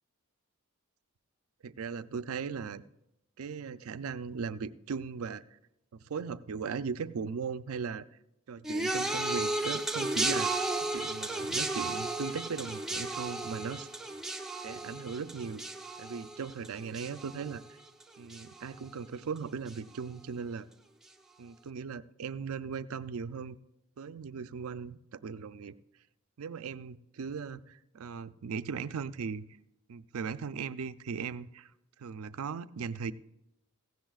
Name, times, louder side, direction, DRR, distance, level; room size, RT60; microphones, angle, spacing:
voice 1, 1.6-2.8 3.4-5.6 5.9-8.0 8.5-10.5 10.8-13.9 14.6-15.6 16.0-17.6 18.2-20.7 21.4-23.6 24.0-25.7 26.4-29.5 29.9-31.7 32.0-33.1, right 5 dB, 80° right, 13 dB, 0.4 m, -38 dB
sound 1, 8.6-18.0 18.3-18.8 19.7-19.8, right 2 dB, ahead, 0.6 m, -34 dB
16.5 x 15.5 x 2.4 m, 0.85 s
head